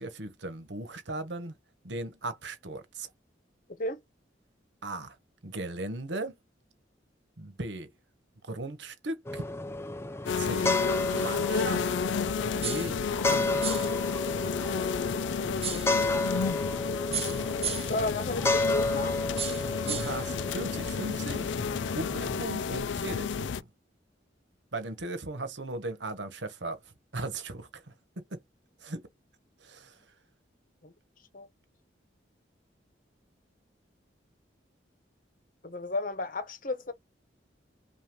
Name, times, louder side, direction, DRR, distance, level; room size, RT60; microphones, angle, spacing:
voice 1, 0.0-1.5 1.8-3.1 4.8-5.2 5.4-6.4 7.4-7.9 8.4-9.4 10.4-10.7 11.1-11.9 12.5-13.0 13.2-14.0 19.6-21.6 21.9-23.7 24.7-26.8 27.1-27.9 28.3-28.4 28.8-29.0 29.6-30.0, right 2 dB, 75° right, 1.3 m, -37 dB
sound 1, 9.2-22.4, left 2 dB, 15° left, 0.4 m, -32 dB
sound 2, 10.3-23.6, left 6 dB, 80° left, 0.4 m, -31 dB
sound 3, 12.6-13.0 13.6-14.0 15.6-16.0 17.1-18.0 19.4-20.2, right 9 dB, 35° right, 0.8 m, -35 dB
voice 2, 17.9-19.2 30.8-30.9 31.3-31.5 35.6-36.9, left 2 dB, 45° left, 1.0 m, -33 dB
5.7 x 2.6 x 3.1 m
head